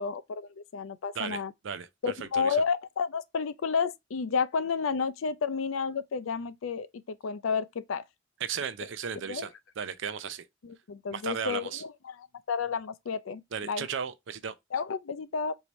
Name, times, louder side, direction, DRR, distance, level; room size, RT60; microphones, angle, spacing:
voice 1, 0.0-1.5 2.0-8.0 9.3-9.5 10.6-13.9 14.7-15.6, left 5 dB, 90° left, 0.5 m, -31 dB
voice 2, 1.1-1.9 2.2-2.6 8.4-10.5 11.1-11.8 13.5-14.5, right 7 dB, 65° right, 0.5 m, -35 dB
4.7 x 2.7 x 3.0 m
head